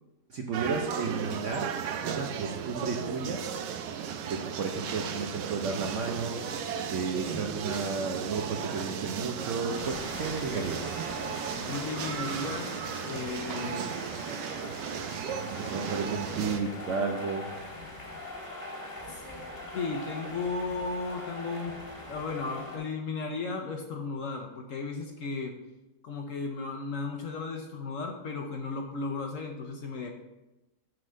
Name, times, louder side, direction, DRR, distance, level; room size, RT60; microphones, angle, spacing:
voice 1, 0.3-1.7 2.0-3.4 4.3-6.6 6.9-10.9 15.5-17.5, right 4 dB, 60° right, 2 dB, 0.8 m, -33 dB
sound 1, 0.5-16.6, right 7 dB, 80° right, 1.3 m, -35 dB
sound 2, 9.7-22.8, left 1 dB, 10° left, 1.4 m, -41 dB
voice 2, 11.5-12.7 13.0-14.0 19.1-19.2 19.7-21.7 22.1-25.5 26.0-30.1, left 3 dB, 60° left, 2 dB, 1.0 m, -35 dB
7.6 x 4.0 x 6.2 m, 1.0 s
omnidirectional pair, 1.9 m